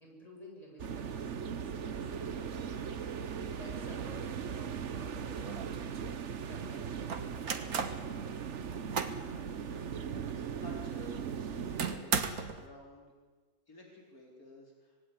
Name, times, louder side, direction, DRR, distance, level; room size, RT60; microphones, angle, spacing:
voice 1, 0.0-6.0 6.5-7.8, equal, 25° left, -1 dB, 7.6 m, -54 dB
sound 1, 0.8-12.0, right 7 dB, 55° right, 1.3 m, -39 dB
sound 2, 5.4-6.2 7.1-8.0 8.5-9.3 9.7-9.8 10.3-10.4 11.8-12.6, right 6 dB, 75° right, 2.0 m, -35 dB
voice 2, 9.3-13.1 13.7-15.0, left 1 dB, 70° left, -1 dB, 4.6 m, -53 dB
25.5 x 18.5 x 10.0 m, 1.4 s
omnidirectional pair, 1.6 m